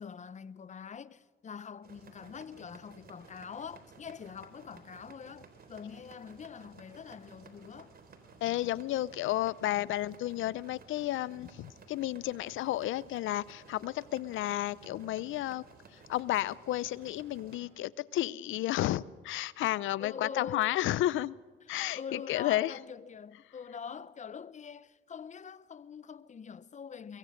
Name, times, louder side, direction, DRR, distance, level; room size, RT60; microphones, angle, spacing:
voice 1, 0.0-7.9 20.0-20.7 21.9-27.2, left 6 dB, 35° left, 0.7 m, -44 dB
sound 1, 1.8-17.6, right 4 dB, 50° right, 3.8 m, -56 dB
voice 2, 8.4-15.6 15.9-21.4 21.7-22.8, left 14 dB, 80° left, 0.6 m, -32 dB
23.0 x 22.5 x 6.5 m
cardioid pair, 90°, 20 cm